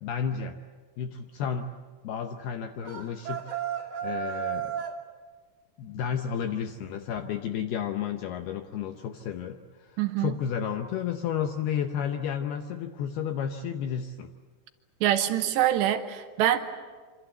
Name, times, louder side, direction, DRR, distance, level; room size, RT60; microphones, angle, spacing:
voice 1, 0.0-0.6 1.0-1.7 2.0-3.5 4.0-4.7 5.8-14.3, left 8 dB, 75° left, 6 dB, 2.4 m, -32 dB
sound 1, 2.8-5.0, right 10 dB, 45° right, 3.3 m, -33 dB
voice 2, 10.0-10.3 15.0-16.6, right 11 dB, 75° right, 8 dB, 2.8 m, -25 dB
26.5 x 26.0 x 8.0 m, 1.5 s
omnidirectional pair, 5.7 m